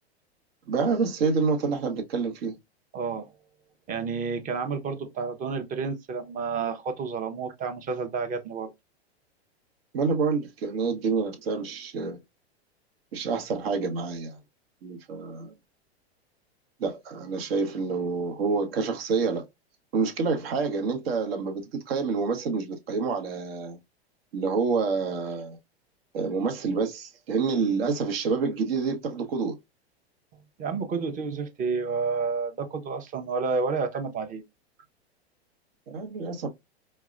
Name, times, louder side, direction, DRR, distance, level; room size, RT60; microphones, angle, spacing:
voice 1, 0.7-2.6 9.9-12.2 13.1-14.4 14.8-15.6 16.8-19.5 19.9-23.8 24.3-25.6 26.1-29.6 35.9-36.5, right 4 dB, 65° right, 1.0 m, -27 dB
voice 2, 2.9-3.3 3.9-8.7 30.6-34.4, right 5 dB, 25° right, 0.7 m, -30 dB
4.5 x 2.1 x 2.4 m
hypercardioid pair, 110°, 32 cm